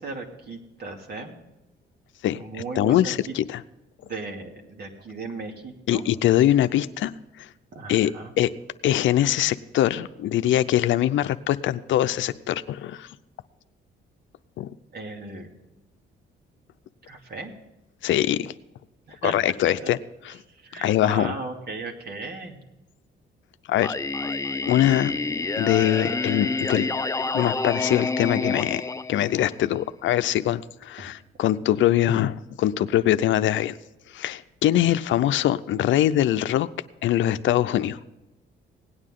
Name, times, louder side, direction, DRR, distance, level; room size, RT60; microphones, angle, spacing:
voice 1, 0.0-1.3 2.4-3.3 4.0-6.0 7.7-8.3 14.9-15.5 17.1-17.5 19.1-19.3 20.6-22.6, right 3 dB, 55° right, 2 dB, 2.6 m, -36 dB
voice 2, 2.2-3.6 5.9-7.1 7.4-7.5 7.9-8.1 8.4-8.5 8.8-13.1 14.6-14.7 18.0-18.5 19.2-20.0 20.2-20.3 20.8-21.3 23.7-24.0 24.7-25.1 25.6-26.9 27.3-33.8 34.1-36.7 37.0-38.0, left 12 dB, 75° left, 12 dB, 0.6 m, -23 dB
Singing, 23.8-29.8, left 3 dB, 15° left, 0.5 m, -28 dB
17.5 x 9.7 x 3.7 m, 1.0 s
cardioid pair, 90°, 20 cm